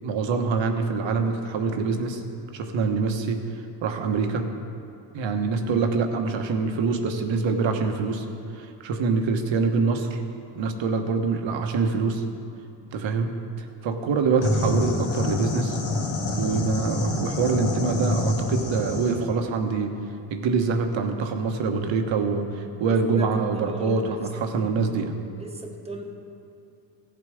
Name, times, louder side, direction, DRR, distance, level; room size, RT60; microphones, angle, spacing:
voice 1, 0.0-2.2 2.5-4.5 5.1-8.2 8.5-10.2 10.5-12.2 12.8-15.8 16.4-20.0 20.3-25.2, right 4 dB, 65° right, 5 dB, 1.3 m, -25 dB
sound 1, 14.4-19.2, left 2 dB, 65° left, 2.0 m, -26 dB
voice 2, 22.8-24.3 24.5-24.9 25.4-26.0, right 2 dB, 10° right, 2 dB, 1.4 m, -38 dB
15.5 x 7.8 x 5.0 m, 2.8 s
cardioid pair, 115°, 48 cm